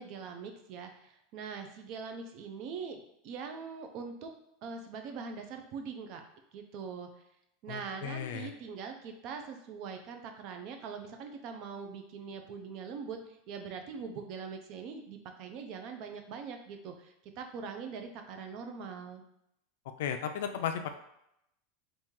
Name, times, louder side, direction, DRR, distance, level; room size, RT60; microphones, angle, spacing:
voice 1, 0.0-4.3 4.6-6.2 6.5-7.1 7.6-19.2, right 5 dB, 45° right, 5 dB, 0.5 m, -42 dB
voice 2, 7.7-8.5 20.0-21.0, left 8 dB, 75° left, 7 dB, 0.4 m, -35 dB
2.9 x 2.7 x 3.6 m, 0.80 s
supercardioid pair, 150°, 0 cm